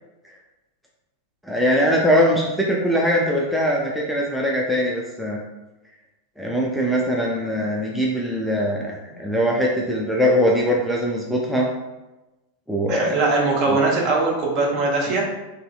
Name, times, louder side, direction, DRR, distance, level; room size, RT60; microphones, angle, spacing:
voice 1, 1.4-5.4 6.4-11.7 12.7-13.2 13.7-13.8, equal, ahead, -3 dB, 0.3 m, -21 dB
voice 2, 12.9-15.3, right 3 dB, 40° right, -1 dB, 0.7 m, -21 dB
3.0 x 2.6 x 2.3 m, 1.0 s
figure-of-eight pair, 90°, 0 cm